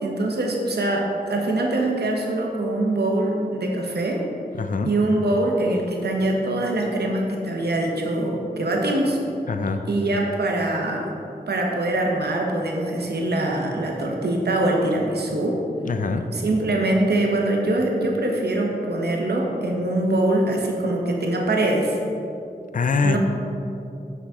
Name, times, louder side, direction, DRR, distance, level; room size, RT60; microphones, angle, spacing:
voice 1, 0.0-4.2 4.8-9.2 9.9-11.2 11.5-15.6 16.3-22.0 23.0-23.2, right 1 dB, 80° right, 0 dB, 0.9 m, -23 dB
voice 2, 4.5-4.9 9.5-9.8 15.8-16.2 22.7-23.2, left 4 dB, 55° left, 8 dB, 0.5 m, -23 dB
6.0 x 5.8 x 3.6 m, 2.7 s
cardioid pair, 50°, 17 cm